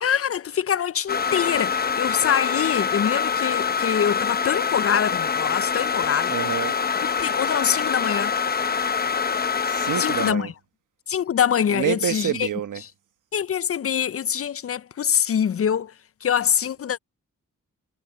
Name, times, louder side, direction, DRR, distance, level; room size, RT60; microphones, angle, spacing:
voice 1, 0.0-6.3 7.2-8.4 10.0-10.5 11.1-12.5 13.3-15.9 16.2-17.0, left 8 dB, 50° left, 0.5 m, -24 dB
sound 1, 1.1-10.3, left 6 dB, 30° left, 0.9 m, -25 dB
voice 2, 6.3-6.8 9.6-10.5 11.7-12.8, right 10 dB, 90° right, 1.4 m, -27 dB
cardioid pair, 80°, 30 cm